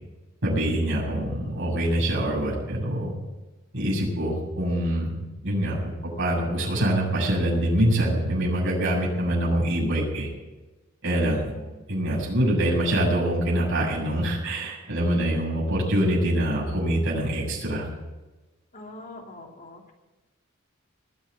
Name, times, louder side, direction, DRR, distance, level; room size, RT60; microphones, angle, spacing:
voice 1, 0.4-3.1 3.7-5.1 5.4-10.3 11.0-11.4 11.9-17.9, right 1 dB, 65° right, -3 dB, 7.4 m, -24 dB
voice 2, 11.3-11.8 18.7-19.9, left 2 dB, 40° left, 1 dB, 2.6 m, -44 dB
20.5 x 7.2 x 8.7 m, 1.1 s
head